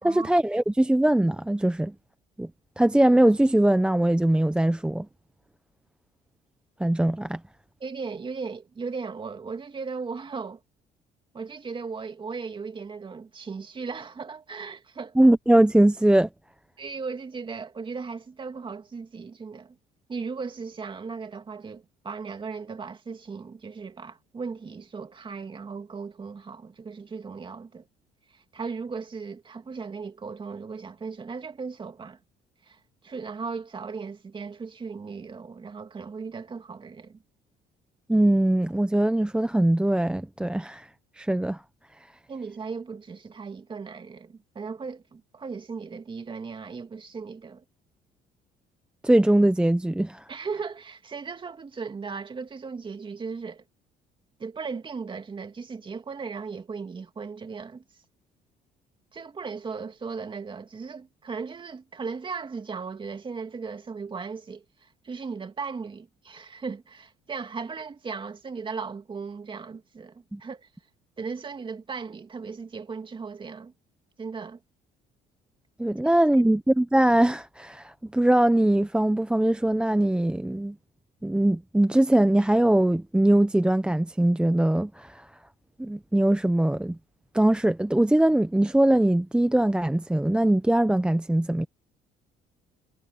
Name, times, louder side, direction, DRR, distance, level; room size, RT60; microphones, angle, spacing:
voice 1, 0.0-1.9 2.4-2.5 2.8-5.1 6.8-7.4 15.2-16.3 38.1-40.9 41.2-41.6 49.0-50.2 70.3-70.4 75.8-80.8 81.2-85.3 85.8-87.0 87.3-91.7, right 1 dB, 5° right, 0.7 m, -21 dB
voice 2, 7.8-10.6 11.3-15.2 16.8-19.8 20.1-27.8 28.3-32.2 32.6-37.2 42.3-47.6 50.3-53.6 54.4-57.8 59.1-70.7 71.2-73.7 74.2-74.6 76.4-76.5, right 5 dB, 30° right, 2.5 m, -37 dB
cardioid pair, 110°, 17 cm